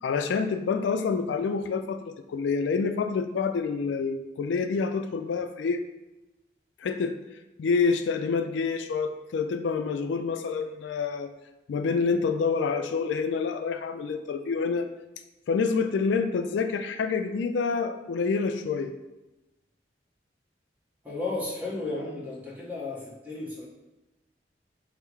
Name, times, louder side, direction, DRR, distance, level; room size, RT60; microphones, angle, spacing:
voice 1, 0.0-5.8 6.8-7.2 7.6-11.3 11.7-14.9 15.5-18.9, left 5 dB, 90° left, 9 dB, 0.3 m, -27 dB
voice 2, 21.0-23.7, left 2 dB, 10° right, -5 dB, 1.0 m, -34 dB
5.5 x 2.0 x 4.6 m, 1.0 s
head